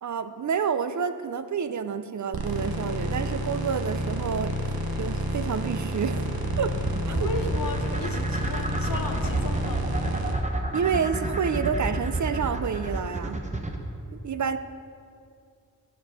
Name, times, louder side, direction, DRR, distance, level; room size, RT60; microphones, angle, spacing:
voice 1, 0.0-4.7 5.0-6.3 6.6-6.8 7.1-7.3 10.7-13.4 14.1-14.6, right 6 dB, 50° right, 11 dB, 0.5 m, -29 dB
sound 1, 2.3-10.3, equal, 70° right, 1.0 m, -30 dB
sound 2, 5.5-13.8, right 2 dB, 20° right, 0.9 m, -30 dB
voice 2, 7.1-9.8, left 3 dB, 65° left, 5 dB, 0.9 m, -34 dB
9.0 x 7.0 x 5.0 m, 2.4 s
wide cardioid pair, 75°, 37 cm